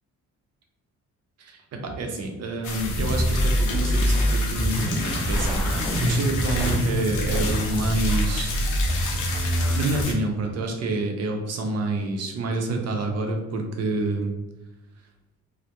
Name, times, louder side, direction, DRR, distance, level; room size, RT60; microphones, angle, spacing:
voice 1, 1.4-8.5 9.7-14.3, right 2 dB, 55° right, 3 dB, 0.6 m, -28 dB
sound 1, 2.6-10.1, left 2 dB, 80° left, 0.5 m, -31 dB
sound 2, 2.9-10.0, equal, ahead, 0.7 m, -25 dB
2.2 x 2.0 x 2.8 m, 1.0 s
cardioid pair, 90°, 30 cm